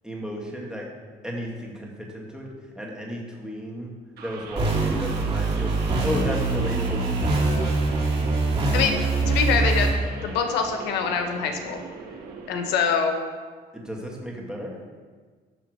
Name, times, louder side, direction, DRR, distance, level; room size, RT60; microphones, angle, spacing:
voice 1, 0.0-0.9 1.2-2.5 2.8-3.9 4.2-5.7 6.0-7.4 13.7-14.7, equal, 5° right, -2 dB, 1.8 m, -33 dB
sound 1, 4.2-12.7, right 4 dB, 65° right, 1.6 m, -40 dB
sound 2, 4.6-9.9, right 3 dB, 35° right, 2.5 m, -23 dB
voice 2, 9.3-10.0 10.2-11.8 12.5-13.2, left 6 dB, 85° left, 5 dB, 1.1 m, -24 dB
10.5 x 3.6 x 6.4 m, 1.5 s
cardioid pair, 110°, 17 cm